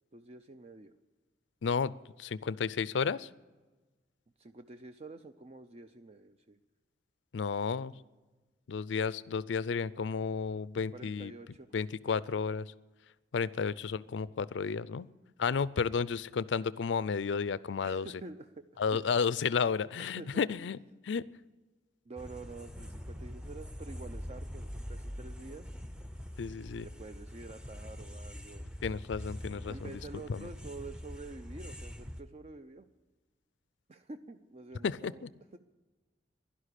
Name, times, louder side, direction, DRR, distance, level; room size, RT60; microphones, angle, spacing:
voice 1, 0.1-0.9 4.4-6.6 10.9-11.7 13.5-13.7 17.8-18.7 19.1-19.2 20.0-20.5 22.1-25.8 26.8-28.7 29.7-32.9 33.9-35.2 35.5-35.6, right 3 dB, 35° right, 9 dB, 0.5 m, -48 dB
voice 2, 1.6-1.9 2.2-3.3 7.3-7.9 8.7-11.3 11.7-12.7 13.3-15.1 15.4-18.1 18.8-20.8 21.0-21.2 26.4-26.9 28.8-29.9 30.3-30.5 34.8-35.3, left 5 dB, 90° left, 19 dB, 0.4 m, -32 dB
sound 1, 22.2-32.2, equal, 5° right, 0.7 m, -44 dB
11.5 x 11.5 x 9.9 m, 1.2 s
head